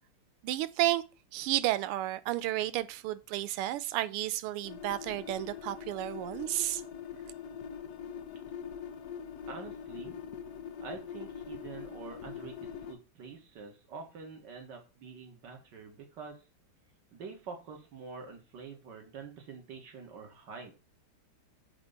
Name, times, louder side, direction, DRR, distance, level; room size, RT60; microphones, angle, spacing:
voice 1, 0.4-1.0 1.3-6.8, right 15 dB, 90° right, 1.5 m, -32 dB
sound 1, 4.6-13.0, left 8 dB, 75° left, 0.9 m, -43 dB
voice 2, 9.5-10.2 10.8-16.4 17.1-20.7, right 5 dB, 55° right, 1.9 m, -46 dB
7.3 x 2.9 x 5.4 m
omnidirectional pair, 2.4 m